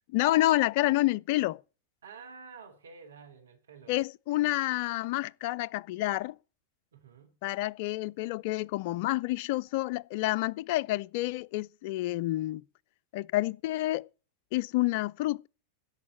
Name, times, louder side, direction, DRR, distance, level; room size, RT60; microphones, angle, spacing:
voice 1, 0.1-1.6 3.9-6.3 7.4-12.6 13.1-14.1 14.5-15.5, left 17 dB, 50° left, 0.5 m, -29 dB
voice 2, 2.0-3.9 6.9-7.4, right 5 dB, 65° right, 2.8 m, -50 dB
11.0 x 7.2 x 7.1 m
figure-of-eight pair, 90°, 0 cm